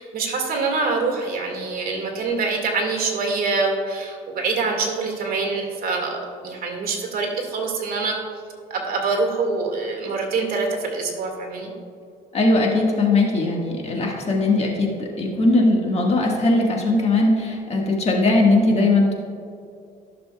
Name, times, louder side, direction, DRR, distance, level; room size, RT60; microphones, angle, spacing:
voice 1, 0.0-8.2 8.7-11.7, right 4 dB, 60° right, 1 dB, 1.9 m, -25 dB
voice 2, 12.3-19.1, left 2 dB, 40° left, -1 dB, 1.6 m, -19 dB
14.5 x 6.8 x 2.3 m, 2.4 s
cardioid pair, 110°, 17 cm